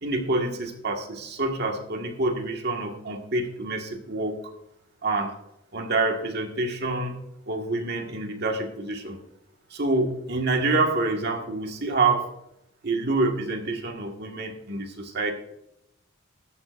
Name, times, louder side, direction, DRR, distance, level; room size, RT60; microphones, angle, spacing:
voice 1, 0.0-4.4 5.0-5.3 5.7-7.2 7.5-9.2 9.7-12.3 12.8-15.3, right 3 dB, 55° right, 3 dB, 1.7 m, -27 dB
14.0 x 12.0 x 2.5 m, 0.80 s
head